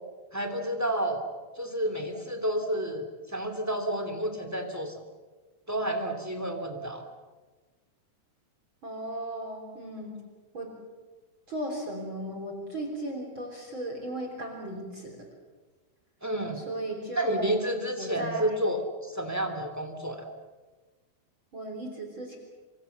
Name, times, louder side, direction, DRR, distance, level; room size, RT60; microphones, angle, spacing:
voice 1, 0.3-1.2 1.6-4.9 5.7-7.1 16.2-16.6 17.2-20.2, right 1 dB, 5° right, 6 dB, 1.9 m, -30 dB
voice 2, 8.8-10.1 10.5-10.7 11.5-15.3 16.6-17.6 18.0-18.6 21.5-22.4, right 1 dB, 30° right, 2 dB, 3.9 m, -36 dB
27.0 x 24.5 x 7.2 m, 1.3 s
omnidirectional pair, 4.4 m